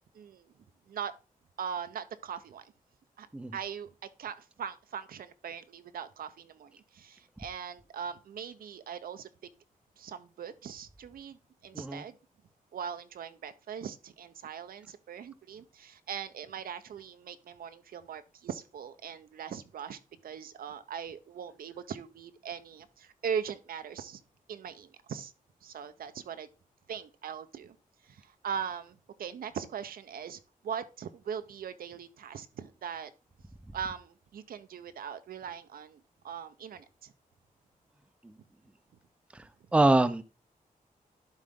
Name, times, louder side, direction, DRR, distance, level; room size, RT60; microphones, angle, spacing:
voice 1, 0.1-0.5 0.9-1.1 1.6-2.7 3.2-3.3 3.5-3.9 4.2-9.3 10.0-12.2 12.7-24.2 24.5-25.3 25.6-26.5 26.9-27.8 28.0-33.1 33.7-37.1, right 7 dB, 80° right, 0.7 m, -40 dB
voice 2, 39.7-40.2, right 2 dB, 10° right, 0.4 m, -24 dB
11.5 x 3.8 x 3.6 m
wide cardioid pair, 150°, 15 cm